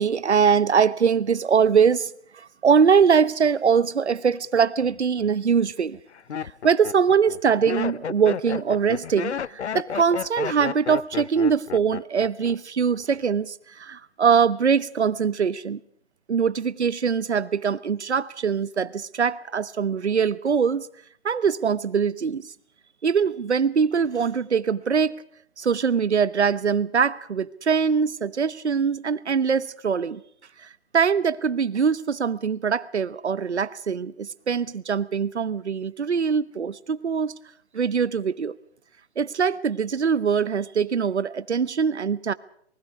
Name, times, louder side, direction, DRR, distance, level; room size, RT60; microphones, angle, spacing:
voice 1, 0.0-6.0 6.4-15.8 16.3-20.9 21.2-22.5 23.0-25.2 25.6-30.2 30.6-37.4 37.7-38.5 39.2-42.3, right 6 dB, 90° right, 1.1 m, -22 dB
Laughter, 4.9-5.3 5.9-12.6 12.8-13.3, left 7 dB, 85° left, 0.8 m, -32 dB
28.0 x 20.0 x 4.7 m
hypercardioid pair, 155°, 33 cm